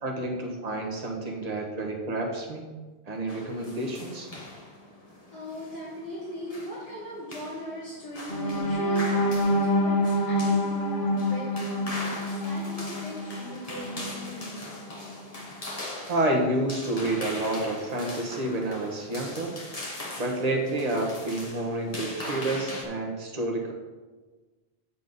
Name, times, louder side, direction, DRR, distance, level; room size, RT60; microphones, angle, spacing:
voice 1, 0.0-2.6 3.0-4.3 16.1-19.6 20.2-23.7, right 1 dB, 35° right, 0 dB, 1.3 m, -29 dB
sound 1, 3.3-22.8, left 1 dB, 35° left, 1.3 m, -41 dB
voice 2, 5.3-12.1 12.4-14.6, equal, 80° left, -12 dB, 3.5 m, -39 dB
sound 2, 8.3-14.2 14.7-14.9 15.3-15.5, left 1 dB, 50° left, 1.1 m, -27 dB
8.3 x 7.1 x 4.1 m, 1.3 s
omnidirectional pair, 1.1 m